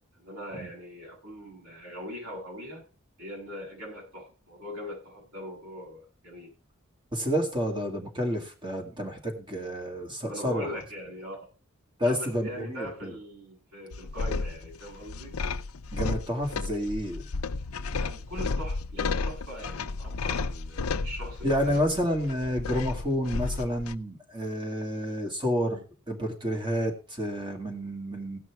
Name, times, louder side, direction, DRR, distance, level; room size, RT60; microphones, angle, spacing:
voice 1, 0.1-2.8 3.2-6.5 10.2-11.5 12.0-15.3 18.0-21.8, equal, 85° right, -3 dB, 7.6 m, -41 dB
voice 2, 7.1-10.8 12.0-13.2 15.9-17.2 21.4-28.4, equal, 20° right, 3 dB, 2.3 m, -30 dB
sound 1, 13.9-24.0, left 4 dB, 90° left, 0.6 m, -33 dB
17.0 x 6.1 x 4.8 m, 0.35 s
head